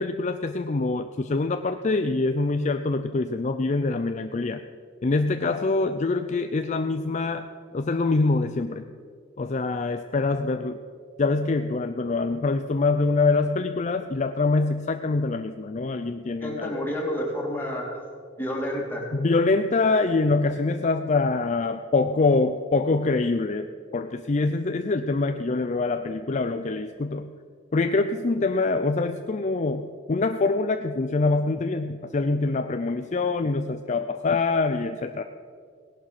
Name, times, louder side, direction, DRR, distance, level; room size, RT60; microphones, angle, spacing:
voice 1, 0.0-4.6 5.0-7.5 7.7-8.8 9.4-10.8 11.2-16.7 19.1-27.3 27.7-35.2, left 3 dB, 40° left, 8 dB, 0.5 m, -25 dB
voice 2, 16.4-18.0 18.4-19.1, equal, 10° left, -2 dB, 2.8 m, -30 dB
17.5 x 11.0 x 5.9 m, 2.1 s
head